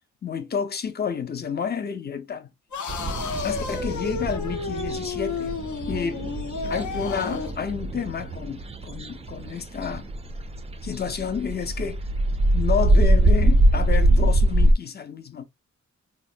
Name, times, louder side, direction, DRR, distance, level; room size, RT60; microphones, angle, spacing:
voice 1, 0.2-2.5 3.4-5.6 5.9-6.2 6.7-10.1 10.8-12.0 12.5-15.4, left 6 dB, 35° left, 0.5 m, -30 dB
sound 1, 2.7-7.6, left 5 dB, 80° left, 0.6 m, -32 dB
sound 2, 2.9-14.7, right 1 dB, 20° right, 0.3 m, -23 dB
4.0 x 2.1 x 2.5 m
wide cardioid pair, 160°, 29 cm